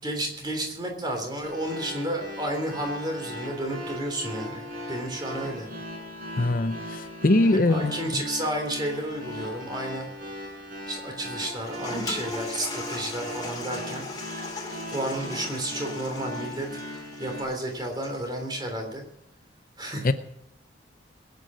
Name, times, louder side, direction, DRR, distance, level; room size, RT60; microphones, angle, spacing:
voice 1, 0.0-5.7 7.7-10.1 10.9-14.1 14.9-16.7 17.2-19.0 19.8-20.1, right 1 dB, 20° right, 2 dB, 3.5 m, -31 dB
sound 1, 1.4-17.4, left 1 dB, 45° right, 6.8 m, -38 dB
voice 2, 6.4-8.0 20.0-20.1, left 2 dB, 45° left, 10 dB, 0.7 m, -22 dB
Toilet flush, 11.4-18.3, left 3 dB, 20° left, 2.8 m, -39 dB
21.5 x 9.4 x 6.3 m, 0.76 s
head